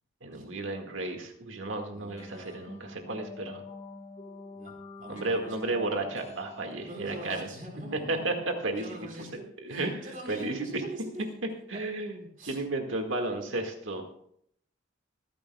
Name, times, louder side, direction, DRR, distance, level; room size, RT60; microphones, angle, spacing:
voice 1, 0.2-3.6 5.1-7.5 8.1-9.3 9.6-10.0 10.3-10.8 11.7-14.0, right 2 dB, 75° right, 3 dB, 1.9 m, -33 dB
voice 2, 1.8-2.6 4.5-5.5 6.2-6.4 6.8-11.2 12.4-12.6, right 1 dB, 40° right, 0 dB, 4.6 m, -44 dB
sound 1, 2.2-9.0, left 3 dB, 35° left, 2.1 m, -48 dB
25.0 x 10.5 x 2.3 m, 0.68 s
head